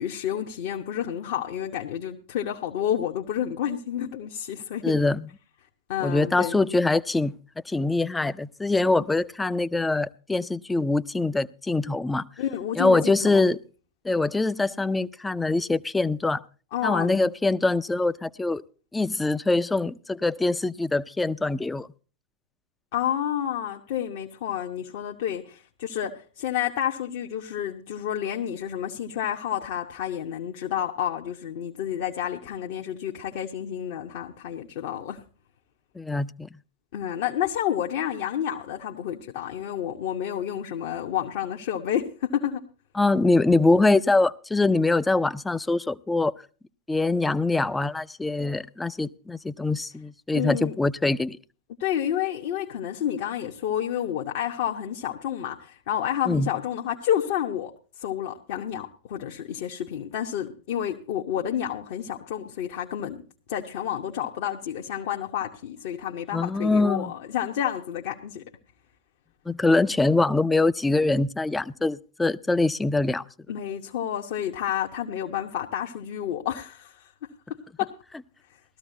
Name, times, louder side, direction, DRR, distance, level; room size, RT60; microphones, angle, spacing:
voice 1, 0.0-5.0 5.9-6.6 11.8-12.0 12.4-13.4 16.7-17.2 22.9-35.2 36.9-42.6 50.3-50.7 51.8-63.2 63.5-68.4 73.5-77.1 77.8-77.9, left 10 dB, 50° left, 1.0 m, -30 dB
voice 2, 4.8-5.2 6.0-7.3 7.7-12.2 12.8-13.6 14.0-16.4 16.8-18.6 18.9-21.9 36.0-36.5 43.0-46.3 46.9-51.4 56.3-56.5 66.3-67.1 69.5-73.2, left 2 dB, 10° left, 0.5 m, -23 dB
18.5 x 13.5 x 2.7 m
figure-of-eight pair, 90°, 0 cm